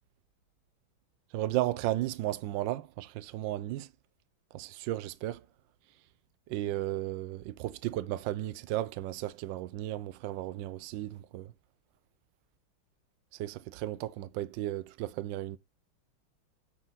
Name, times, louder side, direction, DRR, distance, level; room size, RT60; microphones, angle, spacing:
voice 1, 1.3-3.9 4.5-5.4 6.5-11.5 13.3-15.6, right 14 dB, 75° right, 1.2 m, -34 dB
10.0 x 3.9 x 4.0 m
omnidirectional pair, 2.2 m